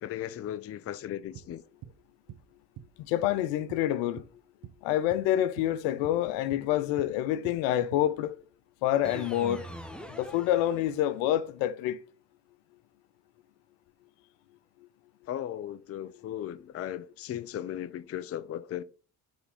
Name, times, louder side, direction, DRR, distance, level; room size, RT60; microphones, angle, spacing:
voice 1, 0.0-1.6 15.3-18.8, left 11 dB, 30° left, 0.5 m, -37 dB
sound 1, 1.3-4.3 4.6-4.8 5.1-8.1, right 11 dB, 45° right, 0.7 m, -48 dB
voice 2, 3.1-4.2 4.8-8.4 8.8-9.7 10.1-12.0, left 12 dB, 70° left, 0.7 m, -27 dB
sound 2, 9.0-11.4, equal, ahead, 1.1 m, -43 dB
7.9 x 3.5 x 3.6 m
hypercardioid pair, 60°, 46 cm